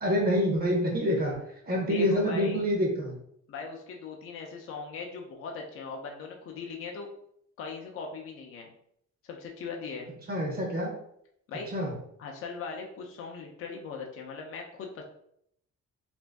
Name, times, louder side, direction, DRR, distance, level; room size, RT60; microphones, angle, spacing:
voice 1, 0.0-1.3 1.7-3.2 10.3-10.9 11.7-11.9, equal, 30° right, -1 dB, 0.8 m, -26 dB
voice 2, 1.9-2.6 3.5-7.1 7.6-8.7 9.2-10.1 11.5-11.7 12.2-15.0, left 5 dB, 45° left, 1 dB, 0.5 m, -39 dB
2.9 x 2.6 x 3.3 m, 0.72 s
cardioid pair, 170°, 30 cm